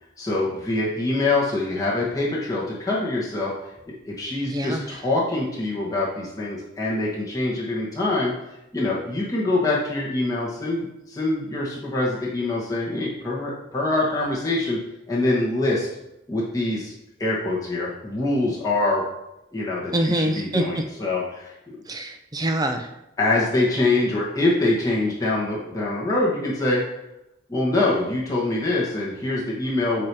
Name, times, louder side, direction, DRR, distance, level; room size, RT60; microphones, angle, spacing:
voice 1, 0.2-3.5 3.9-8.3 8.7-15.9 16.3-16.9 17.2-19.0 19.5-21.8 23.2-26.8 27.5-30.1, left 2 dB, 20° left, -6 dB, 1.5 m, -24 dB
voice 2, 4.5-4.9 19.9-20.8 21.9-22.9, right 1 dB, 20° right, 5 dB, 0.6 m, -25 dB
8.9 x 3.0 x 4.8 m, 0.89 s
head